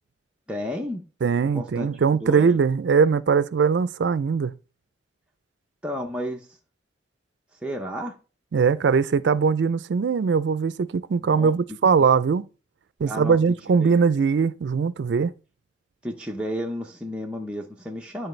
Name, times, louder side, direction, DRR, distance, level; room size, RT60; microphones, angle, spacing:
voice 1, 0.5-1.0 1.5-1.9 2.2-2.5 5.8-6.6 7.5-8.2 11.1-11.8 13.1-13.4 13.8-13.9 16.0-18.3, equal, 5° right, 0.7 m, -32 dB
voice 2, 1.2-4.5 8.5-12.5 13.0-15.3, right 5 dB, 65° right, 0.4 m, -21 dB
10.5 x 4.5 x 3.2 m
head